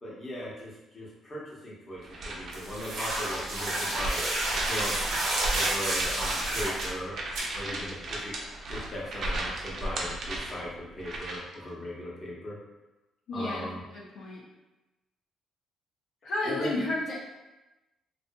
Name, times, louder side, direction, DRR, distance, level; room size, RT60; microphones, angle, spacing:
voice 1, 0.0-4.2 4.7-4.9 5.5-7.1 7.5-8.4 8.7-12.6 13.3-13.8 16.4-16.8, equal, 30° left, -6 dB, 0.8 m, -38 dB
sound 1, 2.0-11.6, right 1 dB, 55° right, 0.5 m, -35 dB
sound 2, 2.5-6.9 7.3-7.4, right 1 dB, 85° right, 0.8 m, -30 dB
voice 2, 13.3-14.4 16.2-17.2, left 2 dB, 75° left, -6 dB, 0.6 m, -32 dB
2.5 x 2.5 x 2.2 m, 1.0 s
cardioid pair, 105°, 0 cm